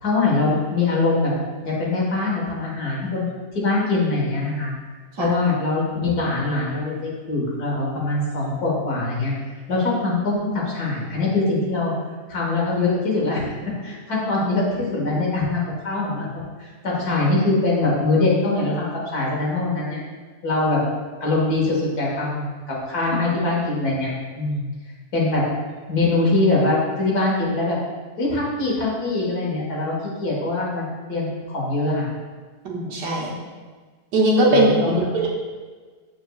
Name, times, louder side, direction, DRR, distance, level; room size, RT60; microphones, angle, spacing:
voice 1, 0.0-1.3 1.6-4.7 5.2-6.9 7.3-9.3 9.7-11.9 12.3-13.4 13.8-16.3 16.6-20.0 20.4-20.8 21.2-24.7 25.1-25.4 25.9-27.8 28.2-32.1 34.5-35.0, left 2 dB, 65° left, -4 dB, 2.1 m, -23 dB
voice 2, 32.7-33.3 34.1-34.7 35.1-35.3, right 1 dB, 90° right, -2 dB, 1.7 m, -19 dB
7.4 x 6.4 x 2.4 m, 1.4 s
omnidirectional pair, 1.8 m